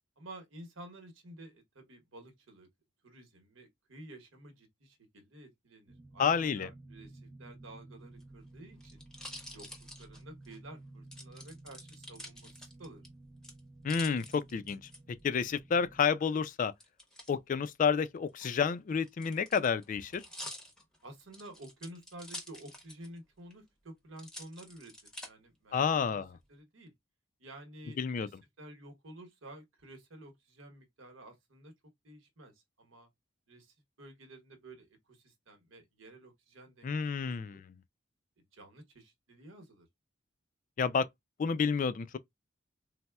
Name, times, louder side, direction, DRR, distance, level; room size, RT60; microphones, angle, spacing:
voice 1, 0.2-2.7 3.0-9.0 9.5-9.7 10.0-13.0 21.0-24.9 25.2-26.2 26.5-26.9 27.4-31.7 32.0-33.1 33.5-37.6 38.4-39.9, right 1 dB, 85° right, 1.0 m, -52 dB
sound 1, 5.9-16.0, right 2 dB, 50° right, 0.8 m, -54 dB
voice 2, 6.2-6.7 13.8-14.8 15.2-16.7 17.3-20.2 25.7-26.3 28.0-28.3 36.8-37.6 40.8-41.1 41.4-42.2, left 6 dB, 40° left, 0.3 m, -30 dB
sound 2, 8.1-10.6 11.1-13.1 13.4-15.0 16.8-17.3 18.3-23.2 23.5-23.6 24.2-25.3 25.9-26.4, equal, 5° left, 0.7 m, -48 dB
4.1 x 2.0 x 2.2 m
head